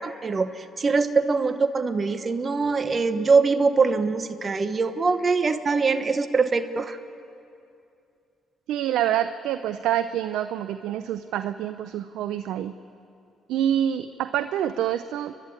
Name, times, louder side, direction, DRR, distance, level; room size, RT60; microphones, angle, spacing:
voice 1, 0.0-7.0, right 4 dB, 40° right, 10 dB, 1.1 m, -23 dB
voice 2, 8.7-12.7 13.5-15.4, right 11 dB, 80° right, 11 dB, 0.6 m, -26 dB
29.5 x 11.5 x 9.7 m, 2.6 s
supercardioid pair, 65°, 0 cm